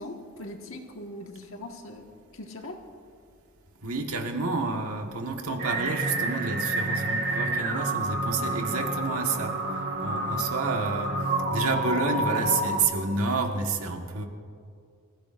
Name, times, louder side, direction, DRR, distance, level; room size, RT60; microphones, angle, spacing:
voice 1, 0.0-2.0 2.3-2.7, left 1 dB, 65° left, 1.7 m, -40 dB
voice 2, 3.8-9.6 10.0-11.2 11.5-14.3, right 3 dB, 85° right, 1.5 m, -29 dB
sound 1, 5.6-12.8, right 2 dB, 45° right, 1.4 m, -29 dB
26.5 x 15.5 x 2.6 m
head